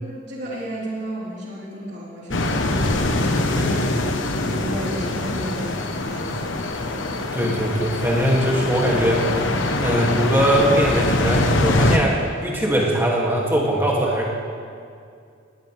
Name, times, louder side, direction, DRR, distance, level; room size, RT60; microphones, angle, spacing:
voice 1, 0.0-3.8 4.5-6.4, equal, 60° right, -7 dB, 4.1 m, -33 dB
sound 1, 2.3-12.0, left 2 dB, 80° left, 1.2 m, -23 dB
voice 2, 3.5-3.8 7.3-9.2 9.8-14.3, equal, 10° right, -4 dB, 2.5 m, -21 dB
18.0 x 18.0 x 3.5 m, 2.3 s
head